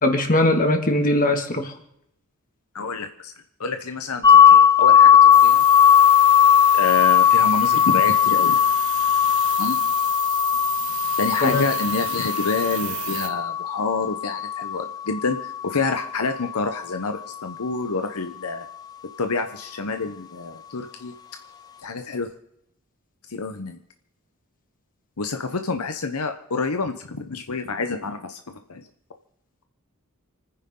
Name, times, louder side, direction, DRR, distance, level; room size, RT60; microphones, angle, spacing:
voice 1, 0.0-1.7 11.4-11.7, left 1 dB, 40° left, 5 dB, 2.2 m, -20 dB
voice 2, 2.7-3.3 3.6-5.6 6.7-8.6 9.6-9.8 11.2-18.7 19.2-21.1 21.8-22.3 23.3-23.8 25.2-28.4 28.7-28.8, left 4 dB, 75° left, 7 dB, 1.0 m, -28 dB
sound 1, 4.2-16.0, left 8 dB, 20° left, 1.1 m, -17 dB
sound 2, 5.3-13.3, right 11 dB, 70° right, 1.6 m, -33 dB
29.0 x 10.0 x 3.9 m, 0.77 s
head